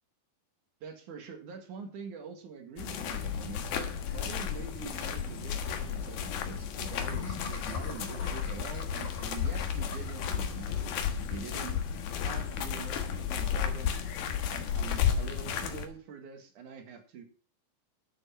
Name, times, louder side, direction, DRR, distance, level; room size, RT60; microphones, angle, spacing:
voice 1, 0.8-10.9 11.3-11.8 12.2-13.9 14.5-17.2, right 6 dB, 60° right, 5 dB, 3.0 m, -45 dB
sound 1, 2.8-15.9, left 8 dB, 85° left, 3.3 m, -33 dB
Laughter, 4.8-4.9 5.2-5.3 5.5-5.7 6.9-10.5, left 4 dB, 55° left, 3.6 m, -46 dB
11.0 x 8.2 x 5.8 m, 0.41 s
omnidirectional pair, 4.2 m